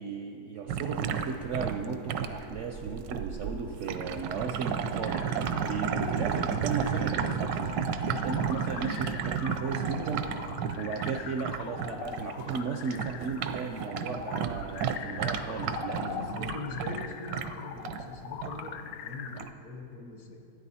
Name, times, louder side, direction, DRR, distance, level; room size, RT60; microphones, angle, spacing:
voice 1, 0.0-5.3 5.6-7.6 8.2-10.2 10.8-16.4, right 5 dB, 70° right, 4 dB, 0.7 m, -35 dB
sound 1, 0.7-12.6 12.9-18.0 18.4-18.7 19.4-19.5, right 7 dB, 85° right, 1.2 m, -32 dB
sound 2, 5.1-19.4, left 7 dB, 85° left, 1.3 m, -42 dB
voice 2, 5.9-6.3 9.9-10.2 16.1-20.4, left 3 dB, 60° left, 2 dB, 1.7 m, -41 dB
14.5 x 9.5 x 4.2 m, 2.7 s
omnidirectional pair, 1.9 m